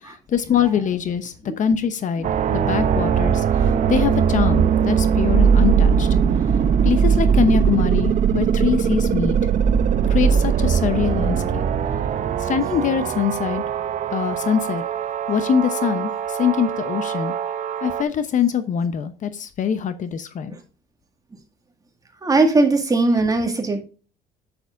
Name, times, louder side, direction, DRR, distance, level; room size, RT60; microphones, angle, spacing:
voice 1, 0.0-6.1 6.8-9.4 10.1-11.6 12.4-13.6 14.1-14.8 15.3-17.3 17.8-20.6, left 8 dB, 50° left, 11 dB, 0.9 m, -23 dB
sound 1, 2.2-18.0, right 7 dB, 50° right, 0.7 m, -20 dB
voice 2, 22.2-23.8, right 3 dB, 20° right, 4 dB, 1.9 m, -19 dB
8.2 x 7.1 x 2.6 m, 0.34 s
cardioid pair, 110°, 17 cm